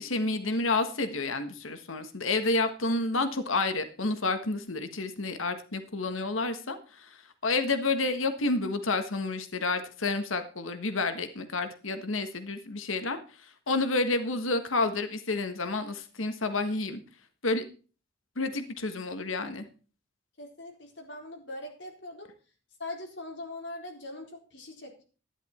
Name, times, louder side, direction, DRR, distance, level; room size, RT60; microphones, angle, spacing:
voice 1, 0.0-7.1 7.4-13.2 13.7-17.0 17.4-17.6 18.4-19.6, left 3 dB, 85° left, 9 dB, 1.4 m, -29 dB
voice 2, 20.4-22.3 22.8-25.0, left 2 dB, 65° left, 1 dB, 4.1 m, -41 dB
12.0 x 10.5 x 4.3 m, 0.37 s
head